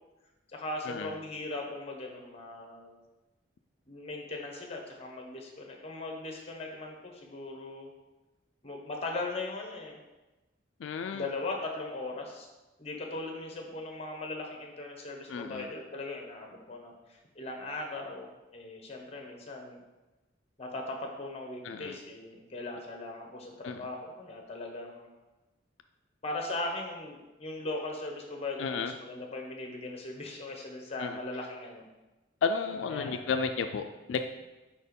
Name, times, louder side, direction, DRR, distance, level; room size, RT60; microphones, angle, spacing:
voice 1, 0.5-3.0 3.9-7.9 8.6-10.0 11.1-12.5 12.8-19.8 20.6-25.1 26.2-31.8 32.9-33.2, left 2 dB, 35° left, 1 dB, 1.1 m, -39 dB
voice 2, 10.8-11.3 15.3-15.7 21.6-22.0 23.6-23.8 28.6-28.9 31.0-31.2 32.4-34.2, left 5 dB, 85° left, 6 dB, 0.3 m, -32 dB
4.8 x 4.3 x 5.2 m, 1.1 s
head